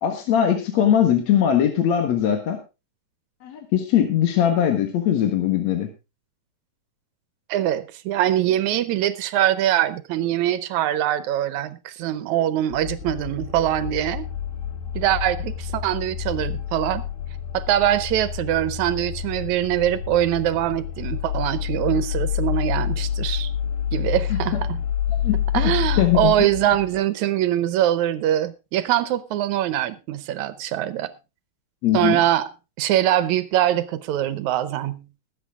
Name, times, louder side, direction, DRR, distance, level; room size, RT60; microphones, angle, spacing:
voice 1, 0.0-2.6 3.4-5.9 24.3-24.4 25.2-25.4 26.0-26.3 31.8-32.2, left 10 dB, 60° left, 2.5 m, -20 dB
voice 2, 7.5-14.3 14.9-17.0 17.5-23.5 23.9-24.8 25.5-31.1 31.9-32.5 32.8-35.0, right 12 dB, 75° right, 2.0 m, -23 dB
sound 1, 12.7-27.0, left 9 dB, 80° left, 2.5 m, -28 dB
20.5 x 8.0 x 3.6 m
omnidirectional pair, 3.7 m